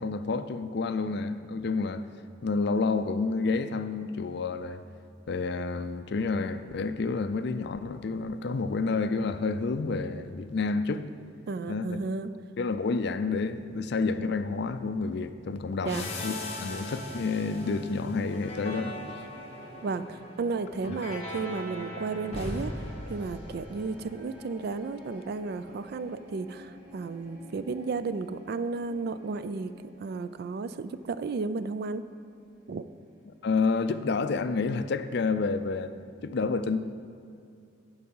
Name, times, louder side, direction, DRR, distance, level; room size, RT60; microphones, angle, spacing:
voice 1, 0.0-2.0 2.4-4.8 5.3-11.1 11.7-12.0 12.6-19.0 20.9-21.0 33.4-35.9 36.2-36.8, left 4 dB, 65° left, 11 dB, 0.4 m, -29 dB
voice 2, 11.5-12.3 15.8-16.0 19.8-22.7 23.1-29.7 30.0-32.0 32.7-32.8, right 4 dB, 55° right, 13 dB, 0.3 m, -33 dB
sound 1, 15.8-24.3, left 1 dB, 35° left, 1.2 m, -40 dB
sound 2, 15.8-34.0, equal, 5° right, 1.7 m, -51 dB
11.0 x 4.8 x 5.5 m, 2.5 s
head